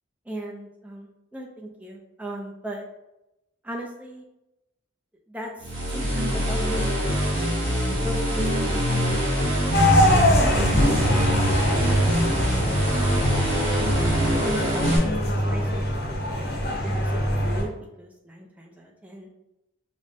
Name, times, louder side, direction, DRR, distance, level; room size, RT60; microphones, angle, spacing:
voice 1, 0.3-2.8 3.6-4.2 5.3-7.5 8.0-11.4 11.8-12.4 14.4-16.5 16.8-17.7 18.0-19.3, right 1 dB, 5° right, 0 dB, 0.3 m, -38 dB
sound 1, 5.6-15.0, equal, 60° right, 1.5 m, -24 dB
sound 2, 9.7-17.6, equal, 50° left, 0.7 m, -23 dB
4.9 x 2.0 x 2.5 m, 0.90 s
head